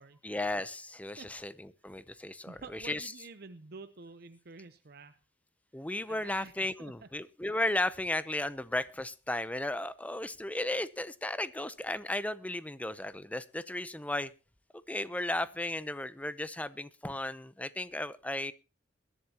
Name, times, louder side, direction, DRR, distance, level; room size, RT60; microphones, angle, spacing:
voice 1, 0.2-2.6 2.8-3.1 5.7-14.3 14.9-18.5, left 1 dB, 10° left, 15 dB, 0.6 m, -35 dB
voice 2, 2.5-5.2 6.1-7.1, right 4 dB, 55° right, 11 dB, 0.7 m, -49 dB
21.5 x 11.0 x 2.9 m, 0.31 s
head